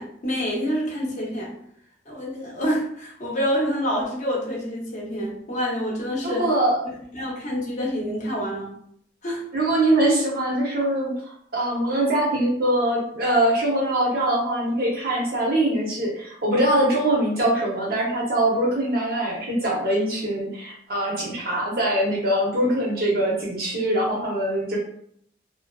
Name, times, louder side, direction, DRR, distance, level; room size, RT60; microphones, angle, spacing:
voice 1, 0.0-1.5 2.1-6.5 7.1-8.7 9.2-9.4, equal, 40° left, -4 dB, 0.6 m, -27 dB
voice 2, 6.2-6.8 9.5-24.8, right 1 dB, 55° right, -4 dB, 0.8 m, -23 dB
2.5 x 2.1 x 2.3 m, 0.67 s
head